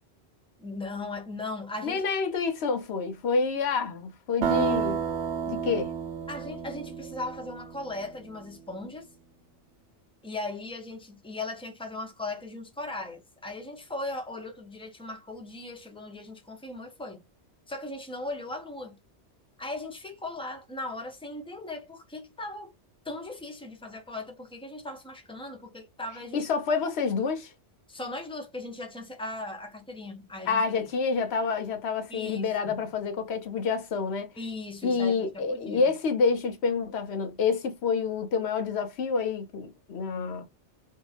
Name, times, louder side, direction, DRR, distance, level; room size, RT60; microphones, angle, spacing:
voice 1, 0.6-2.0 6.3-9.1 10.2-17.2 17.7-19.0 19.6-22.7 23.0-26.4 27.9-30.6 32.1-32.9 34.4-35.9, left 2 dB, 5° left, 0.5 m, -38 dB
voice 2, 1.8-5.0 5.5-5.9 26.3-27.5 30.5-34.3 34.8-40.5, left 5 dB, 70° left, 1.0 m, -28 dB
sound 1, 4.4-8.2, right 7 dB, 80° right, 0.9 m, -31 dB
2.7 x 2.6 x 2.4 m
omnidirectional pair, 1.2 m